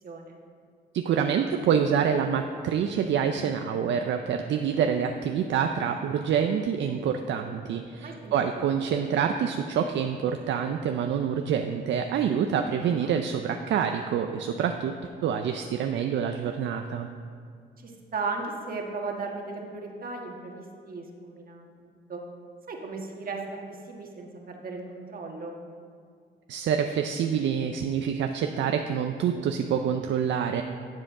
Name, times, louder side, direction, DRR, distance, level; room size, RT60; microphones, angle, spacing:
voice 1, 0.0-0.4 8.0-8.6 12.8-13.1 17.8-22.2 22.7-23.4 23.7-25.6, right 4 dB, 45° right, 1 dB, 1.5 m, -37 dB
voice 2, 0.9-14.9 15.2-17.1 26.5-30.6, right 7 dB, 65° right, 5 dB, 0.5 m, -26 dB
12.0 x 7.6 x 3.7 m, 2.1 s
cardioid pair, 90°, 20 cm